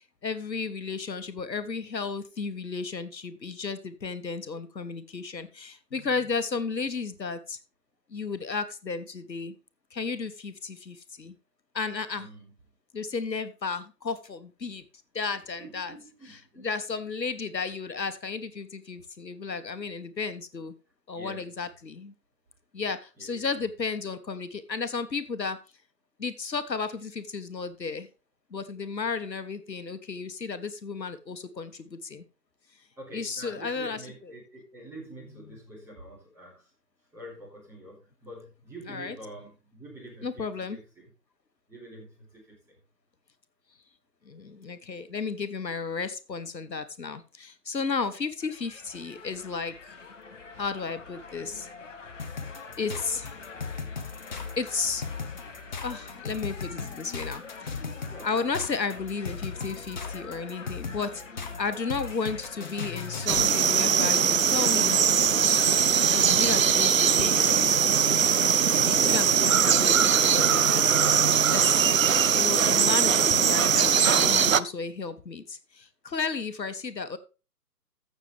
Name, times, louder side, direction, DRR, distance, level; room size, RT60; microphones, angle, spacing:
voice 1, 0.2-7.6 8.1-9.5 9.9-11.3 11.7-12.3 12.9-14.8 15.1-16.0 16.2-20.7 21.1-22.1 22.7-25.6 26.2-28.1 28.5-32.2 33.1-34.4 35.5-35.6 38.9-39.1 40.2-40.8 44.2-50.0 50.6-51.7 52.8-53.4 54.6-55.0 55.8-57.8 58.2-61.2 61.6-65.0 66.1-68.2 68.9-70.0 70.3-71.0 71.5-71.9 72.3-77.2, left 4 dB, 85° left, 11 dB, 1.2 m, -33 dB
voice 2, 12.1-12.5 15.6-16.7 21.1-21.5 23.2-23.6 33.0-36.5 37.1-40.4 40.7-41.0 41.7-42.1 42.5-42.8 58.1-58.3 58.5-58.6, right 1 dB, 5° right, -6 dB, 3.4 m, -46 dB
sound 1, 48.4-67.5, left 4 dB, 45° left, 1.7 m, -45 dB
sound 2, 52.2-63.6, left 5 dB, 30° left, 0.9 m, -37 dB
sound 3, 63.3-74.6, right 7 dB, 55° right, 0.5 m, -21 dB
14.5 x 6.7 x 3.4 m, 0.32 s
figure-of-eight pair, 150°, 49 cm